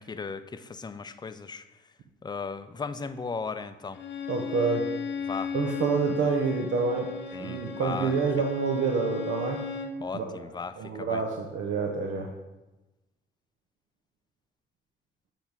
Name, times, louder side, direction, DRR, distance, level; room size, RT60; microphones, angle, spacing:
voice 1, 0.0-1.6 2.2-4.0 5.3-5.5 7.3-8.1 10.0-11.2, left 5 dB, 20° left, 11 dB, 0.4 m, -36 dB
Bowed string instrument, 3.9-10.0, left 6 dB, 65° left, 0.8 m, -36 dB
voice 2, 4.3-4.8 5.5-7.1 7.4-9.6 10.1-10.4 10.8-12.3, right 5 dB, 70° right, 2 dB, 0.8 m, -27 dB
7.6 x 3.5 x 6.0 m, 1.0 s
cardioid pair, 90°, 20 cm